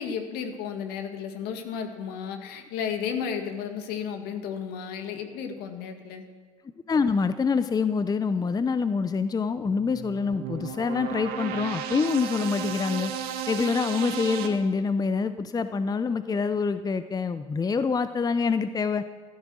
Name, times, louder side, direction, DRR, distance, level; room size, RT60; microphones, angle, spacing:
voice 1, 0.0-6.2, left 7 dB, 65° left, 5 dB, 2.1 m, -33 dB
voice 2, 6.9-13.1 13.5-19.0, left 5 dB, 20° left, 12 dB, 0.7 m, -26 dB
sound 1, 9.7-14.5, right 8 dB, 65° right, 1.8 m, -34 dB
14.5 x 13.5 x 6.4 m, 1.5 s
hypercardioid pair, 70°, 17 cm